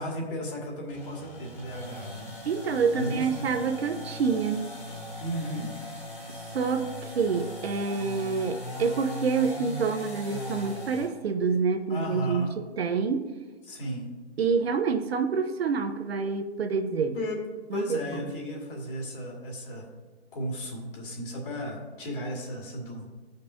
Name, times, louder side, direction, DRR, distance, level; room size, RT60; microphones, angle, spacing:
voice 1, 0.0-2.3 2.9-3.5 5.2-5.7 11.9-12.6 13.6-14.1 17.1-17.4 17.7-19.9 20.3-23.1, equal, 50° left, -1 dB, 2.0 m, -34 dB
sound 1, 0.9-11.1, left 1 dB, 5° left, 0.7 m, -39 dB
voice 2, 2.5-4.7 6.5-13.3 14.4-17.2 17.7-18.2, right 5 dB, 65° right, 6 dB, 0.8 m, -27 dB
14.5 x 5.3 x 2.7 m, 1.4 s
hypercardioid pair, 160°, 34 cm